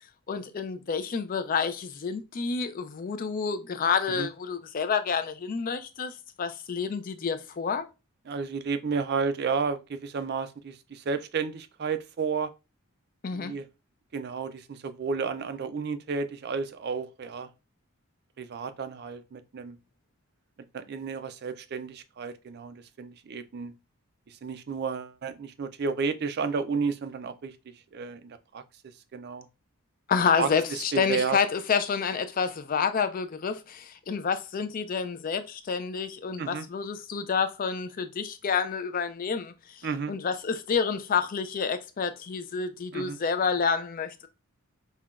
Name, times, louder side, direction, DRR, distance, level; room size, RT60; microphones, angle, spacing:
voice 1, 0.3-7.8 13.2-13.5 30.1-39.8 40.1-44.1, left 6 dB, 40° left, 0.3 m, -29 dB
voice 2, 8.3-12.5 13.3-13.7 14.1-17.5 18.4-19.8 20.7-23.7 24.3-28.6 29.1-29.5 30.4-31.4 36.4-36.7 39.8-40.1 42.9-43.2, right 5 dB, 45° right, 0.3 m, -32 dB
5.5 x 2.2 x 2.3 m
head